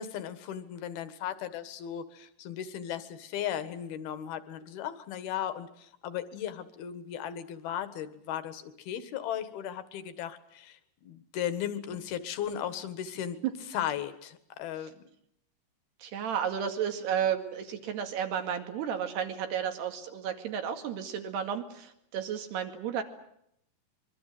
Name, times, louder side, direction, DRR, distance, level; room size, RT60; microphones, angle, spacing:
voice 1, 0.0-13.4 13.7-15.0, left 10 dB, 70° left, 11 dB, 3.4 m, -36 dB
voice 2, 16.0-23.0, right 8 dB, 80° right, 6 dB, 4.3 m, -32 dB
25.0 x 23.5 x 7.8 m, 0.74 s
omnidirectional pair, 4.7 m